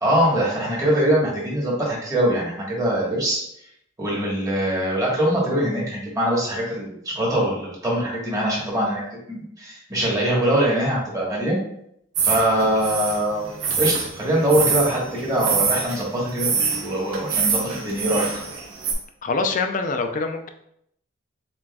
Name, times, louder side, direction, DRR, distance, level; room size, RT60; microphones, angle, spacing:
voice 1, 0.0-3.4 4.0-9.0 9.3-11.6 12.2-13.4 13.8-18.3, right 1 dB, 15° right, -5 dB, 1.3 m, -23 dB
sound 1, 12.2-18.9, right 5 dB, 80° right, 0.8 m, -25 dB
voice 2, 19.2-20.5, left 4 dB, 40° left, 6 dB, 0.4 m, -24 dB
7.2 x 2.5 x 2.3 m, 0.73 s
head